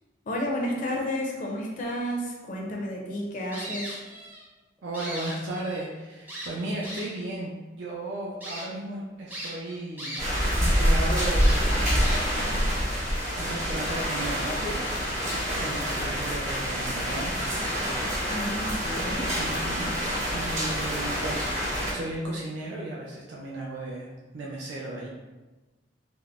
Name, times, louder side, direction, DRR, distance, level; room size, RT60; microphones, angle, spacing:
voice 1, 0.3-4.0 18.3-19.3, equal, 45° left, -1 dB, 0.5 m, -31 dB
sound 1, 3.5-4.5 4.8-5.8 6.3-7.3 7.8-7.9 8.4-8.6 9.3-10.5 10.8-10.9 11.4-12.5, equal, 10° right, 0.5 m, -38 dB
voice 2, 4.8-10.3 10.6-12.8 13.4-14.8 15.0-17.3 19.4-19.9 20.3-21.5 21.9-25.1, right 1 dB, 80° right, -3 dB, 0.4 m, -35 dB
sound 2, 10.2-21.9, equal, 45° right, 1.0 m, -26 dB
3.5 x 2.0 x 2.3 m, 1.1 s
head